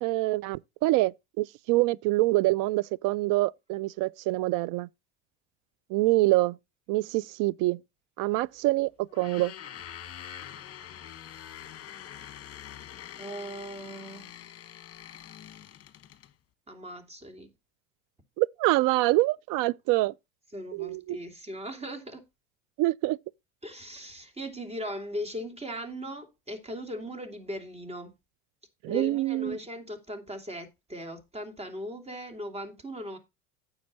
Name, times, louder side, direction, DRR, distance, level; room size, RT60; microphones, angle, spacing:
voice 1, 0.0-4.9 5.9-6.6 6.9-7.8 8.2-9.5 18.4-20.1 20.7-21.2 22.8-23.2 28.8-29.6, right 20 dB, 60° right, 0.5 m, -25 dB
sound 1, 9.1-16.3, left 10 dB, 40° left, 1.3 m, -45 dB
voice 2, 13.2-14.3 16.7-17.5 20.5-22.2 23.6-28.2 28.9-33.2, equal, 15° right, 2.9 m, -38 dB
9.6 x 7.3 x 4.1 m
hypercardioid pair, 80°, 37 cm